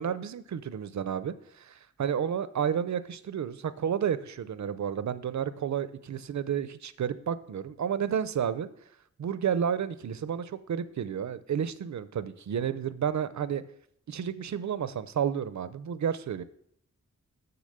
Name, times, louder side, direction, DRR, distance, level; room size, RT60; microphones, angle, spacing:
voice 1, 0.0-8.7 9.2-13.6 14.1-16.4, right 8 dB, 65° right, 14 dB, 0.6 m, -31 dB
7.0 x 6.8 x 6.6 m, 0.70 s
wide cardioid pair, 160°, 31 cm